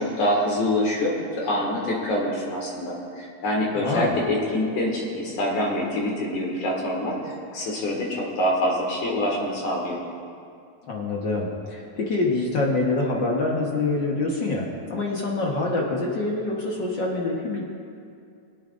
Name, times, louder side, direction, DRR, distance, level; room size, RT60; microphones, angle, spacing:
voice 1, 0.0-10.0, left 1 dB, 75° left, -2 dB, 3.3 m, -25 dB
voice 2, 3.8-4.2 10.9-17.6, left 2 dB, 50° left, -3 dB, 1.4 m, -25 dB
23.0 x 8.8 x 2.6 m, 2.4 s
omnidirectional pair, 3.4 m